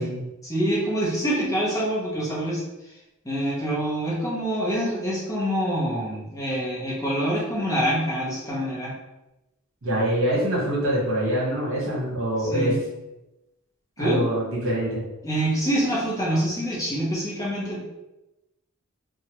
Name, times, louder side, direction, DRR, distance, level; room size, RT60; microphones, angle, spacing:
voice 1, 0.4-2.6 3.2-8.9 12.4-12.7 14.0-14.2 15.2-17.8, equal, 15° left, -5 dB, 0.7 m, -26 dB
voice 2, 9.8-12.8 14.0-15.0, right 1 dB, 60° right, -5 dB, 1.2 m, -25 dB
2.9 x 2.3 x 2.9 m, 0.96 s
head